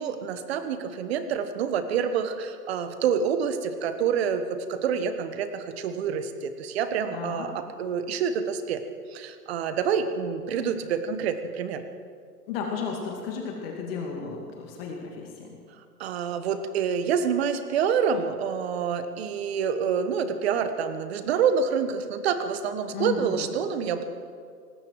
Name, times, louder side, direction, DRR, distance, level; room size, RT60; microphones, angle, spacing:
voice 1, 0.0-8.8 9.1-11.8 16.0-24.0, right 7 dB, 40° right, 9 dB, 1.3 m, -27 dB
voice 2, 7.1-7.5 12.5-15.6 22.9-23.6, left 6 dB, 35° left, 0 dB, 2.4 m, -34 dB
19.0 x 16.0 x 4.8 m, 2.2 s
hypercardioid pair, 145°, 49 cm